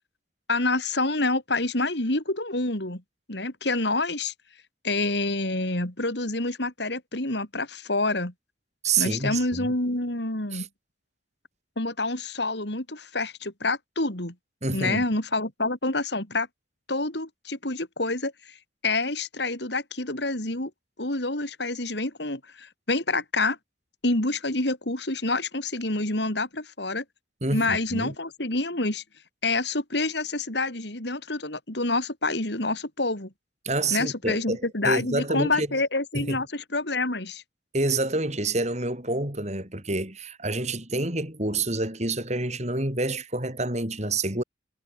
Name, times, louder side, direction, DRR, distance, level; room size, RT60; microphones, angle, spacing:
voice 1, 0.5-3.0 3.3-4.3 4.8-8.3 9.0-10.7 11.8-14.3 14.7-16.5 16.9-18.6 18.8-20.7 21.0-23.6 24.0-27.0 27.5-29.0 29.4-33.3 33.9-37.4, left 2 dB, 60° left, 3.9 m, -27 dB
voice 2, 8.8-9.7 10.5-10.7 14.6-15.0 27.4-28.1 33.6-35.7 36.1-36.4 37.7-44.4, right 2 dB, 35° right, 6.0 m, -28 dB
head